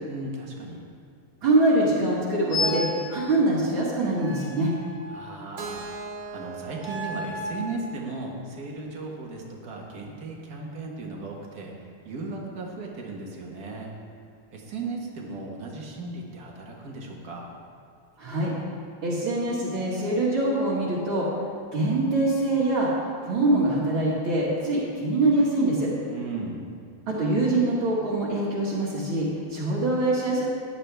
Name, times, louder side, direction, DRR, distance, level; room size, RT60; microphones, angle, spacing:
voice 1, 0.0-0.8 5.1-5.9 6.3-13.9 14.5-17.5 26.1-26.6, right 3 dB, 45° right, -1 dB, 1.8 m, -36 dB
voice 2, 1.4-2.8 3.1-4.7 18.2-18.5 19.0-21.3 21.7-25.9 27.1-30.5, right 2 dB, 65° right, -9 dB, 2.5 m, -24 dB
sound 1, 2.5-3.0 4.1-5.4 6.7-7.6, left 2 dB, 45° left, 3.9 m, -32 dB
Keyboard (musical), 5.6-9.5, right 4 dB, 85° right, 1.9 m, -41 dB
14.5 x 10.5 x 3.4 m, 2.2 s
omnidirectional pair, 2.4 m